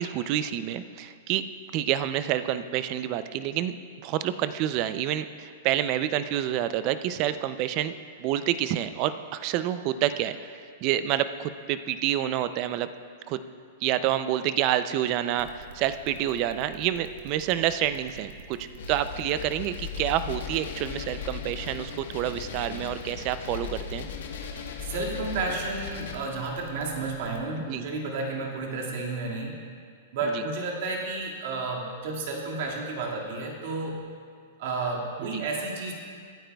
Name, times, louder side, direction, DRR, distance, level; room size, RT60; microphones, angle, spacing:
voice 1, 0.0-1.4 1.7-3.8 4.0-7.9 8.2-10.5 10.8-12.9 13.3-13.4 13.8-24.1 27.7-27.8 30.3-30.4 35.2-35.4, right 11 dB, 30° right, 12 dB, 0.4 m, -28 dB
sound 1, 15.4-27.5, right 6 dB, 80° right, 1.4 m, -46 dB
sound 2, 18.8-26.1, left 7 dB, 80° left, 1.2 m, -37 dB
voice 2, 24.8-29.6 30.1-34.0 34.6-35.9, right 3 dB, 50° right, -2 dB, 2.0 m, -31 dB
23.5 x 9.0 x 2.3 m, 2.1 s
supercardioid pair, 170°, 0 cm